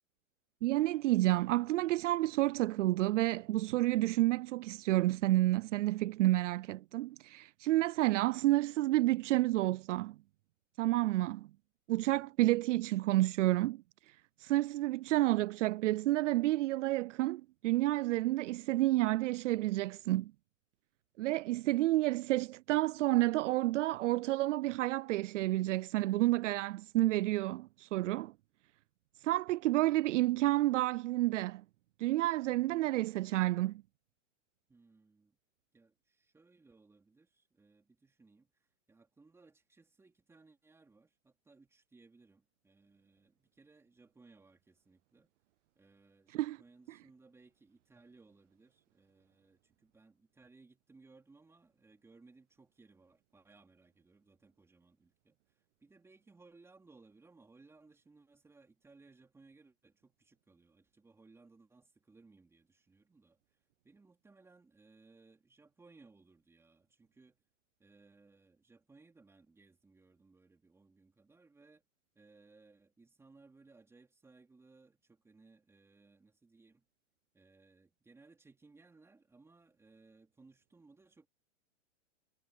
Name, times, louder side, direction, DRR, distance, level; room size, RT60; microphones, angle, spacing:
voice 1, 0.6-10.2 10.8-11.5 11.9-13.8 14.4-20.3 21.2-28.3 29.2-31.6 32.0-33.8 46.3-46.6, right 17 dB, 70° right, 0.5 m, -30 dB
voice 2, 12.0-12.3 34.7-35.4 35.7-45.3 45.8-63.6 63.8-67.4 67.8-71.8 72.1-76.9 77.3-81.3, right 3 dB, 5° right, 4.1 m, -63 dB
supercardioid pair, 160°, 38 cm